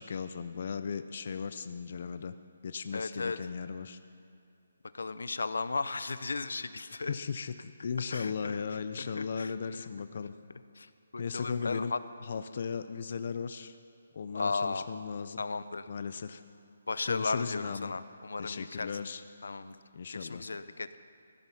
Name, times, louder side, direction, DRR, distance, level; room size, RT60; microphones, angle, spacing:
voice 1, 0.0-2.4 2.6-4.0 7.1-10.3 11.2-11.9 12.2-13.8 14.1-15.4 15.9-16.4 17.1-17.9 18.4-19.2 19.9-20.4, left 6 dB, 35° left, 11 dB, 0.4 m, -36 dB
voice 2, 2.9-3.4 4.9-7.2 8.1-8.6 9.0-9.5 10.1-10.2 10.8-12.0 14.3-14.8 15.4-15.9 16.9-18.9 19.4-19.8 20.1-21.0, left 3 dB, 85° left, 13 dB, 0.6 m, -35 dB
15.0 x 9.7 x 5.7 m, 2.6 s
hypercardioid pair, 180°, 0 cm